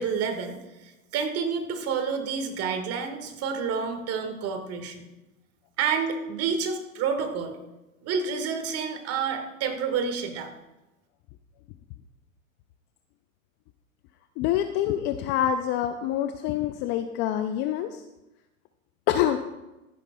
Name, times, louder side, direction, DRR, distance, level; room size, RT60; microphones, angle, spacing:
voice 1, 0.0-5.1 5.8-7.6 8.0-10.5, right 6 dB, 35° right, 6 dB, 1.7 m, -29 dB
voice 2, 14.4-18.0 19.1-19.4, left 11 dB, 30° left, 9 dB, 0.4 m, -26 dB
14.5 x 10.5 x 2.3 m, 1.0 s
hypercardioid pair, 100°, 41 cm